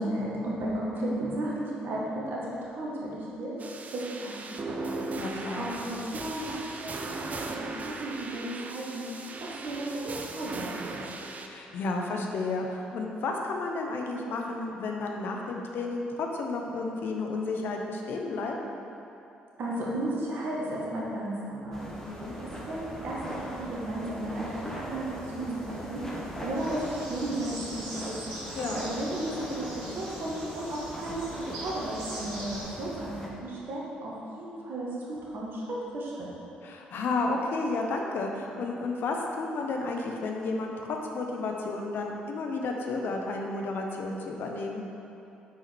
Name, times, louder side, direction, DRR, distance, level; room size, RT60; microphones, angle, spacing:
voice 1, 0.0-3.5 3.9-5.0 5.6-9.1 9.4-11.0 19.6-21.9 22.4-36.3, right 1 dB, 60° right, -5 dB, 1.5 m, -34 dB
sound 1, 3.6-11.5, right 3 dB, 40° right, 0.6 m, -38 dB
voice 2, 5.2-5.7 11.4-18.5 22.0-22.4 28.5-28.8 36.6-44.9, left 3 dB, 65° left, 1 dB, 0.8 m, -32 dB
sound 2, 21.7-33.3, equal, 10° left, 1.3 m, -40 dB
sound 3, 26.5-32.6, right 1 dB, 85° right, 1.3 m, -42 dB
6.0 x 4.9 x 4.5 m, 2.8 s
hypercardioid pair, 55°, 4 cm